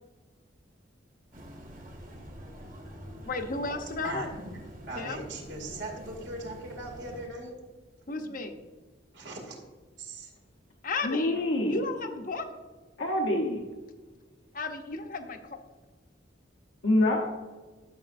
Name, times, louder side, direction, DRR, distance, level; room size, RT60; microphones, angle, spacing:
sound 1, 1.3-7.3, equal, 45° right, 1.8 m, -46 dB
voice 1, 3.2-4.3 5.0-5.3 8.1-8.6 10.8-12.5 14.5-15.6, left 3 dB, 45° left, 6 dB, 0.8 m, -34 dB
voice 2, 4.0-7.5 9.1-9.6 10.0-10.3, right 2 dB, 70° right, 0 dB, 2.4 m, -39 dB
voice 3, 11.0-11.8 13.0-13.6 16.8-17.3, left 1 dB, 80° left, -1 dB, 0.9 m, -26 dB
12.5 x 7.1 x 2.6 m, 1.4 s
head